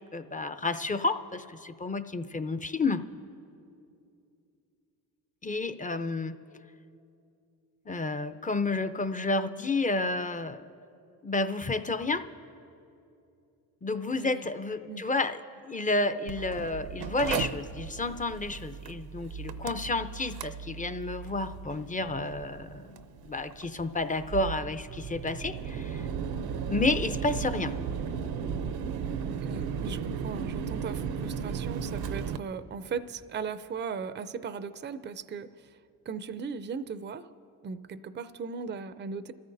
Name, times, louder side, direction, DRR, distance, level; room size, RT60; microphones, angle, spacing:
voice 1, 0.1-3.0 5.4-6.4 7.9-10.7 11.2-12.3 13.8-15.4 15.6-23.0 23.2-26.0 26.7-27.7, left 2 dB, 20° left, 10 dB, 0.6 m, -30 dB
voice 2, 14.1-14.5 14.9-15.0 29.4-35.8 36.1-37.3 37.6-39.3, right 5 dB, 30° right, 13 dB, 0.5 m, -38 dB
Mechanical fan, 16.3-32.4, right 6 dB, 70° right, 0.7 m, -36 dB
27.5 x 14.0 x 2.7 m, 2.6 s
cardioid pair, 75°, 38 cm